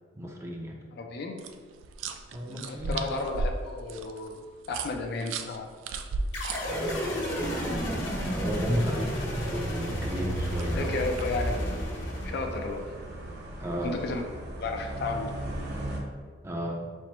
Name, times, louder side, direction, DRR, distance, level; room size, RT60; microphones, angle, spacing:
voice 1, 0.1-0.8 2.3-3.0 6.7-8.0 8.3-11.0 13.6-14.0 16.4-16.8, equal, 15° right, -1 dB, 0.5 m, -34 dB
voice 2, 1.0-1.4 2.5-5.7 9.2-9.3 10.7-11.9 12.2-12.9 13.8-14.2 14.6-15.4, left 3 dB, 55° left, 3 dB, 0.4 m, -33 dB
sound 1, 1.4-7.3 9.9-11.4, right 3 dB, 85° right, 0.3 m, -36 dB
sound 2, 6.3-12.8, equal, 75° left, 1.1 m, -31 dB
sound 3, 6.6-16.0, right 1 dB, 60° right, 0.7 m, -40 dB
4.3 x 2.0 x 4.3 m, 1.5 s
head